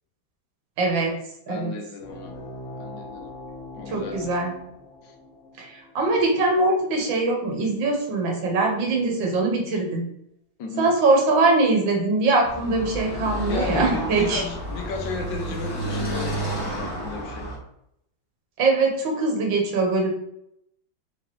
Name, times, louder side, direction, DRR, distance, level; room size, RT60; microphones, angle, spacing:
voice 1, 0.8-1.1 1.5-1.7 3.9-4.5 5.6-10.0 10.8-14.4 18.6-20.1, right 3 dB, 75° right, 1 dB, 1.7 m, -22 dB
voice 2, 1.5-2.3 2.8-3.3 3.8-4.3 5.0-5.1 10.6-10.9 13.5-17.5, left 3 dB, 70° left, 2 dB, 1.3 m, -34 dB
sound 1, 2.0-7.1, left 2 dB, 50° left, 1.5 m, -41 dB
Car passing by / Traffic noise roadway noise, 12.4-17.6, equal, 25° left, 0.5 m, -30 dB
5.0 x 3.1 x 2.9 m, 0.77 s
omnidirectional pair, 2.2 m